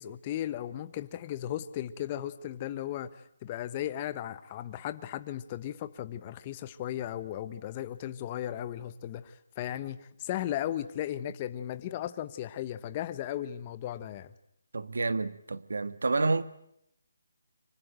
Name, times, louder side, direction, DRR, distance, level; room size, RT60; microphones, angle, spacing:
voice 1, 0.0-14.3, left 12 dB, 20° left, 1.2 m, -36 dB
voice 2, 14.7-16.4, right 3 dB, 85° right, 1.7 m, -29 dB
25.5 x 24.0 x 9.1 m
hypercardioid pair, 170°, 0 cm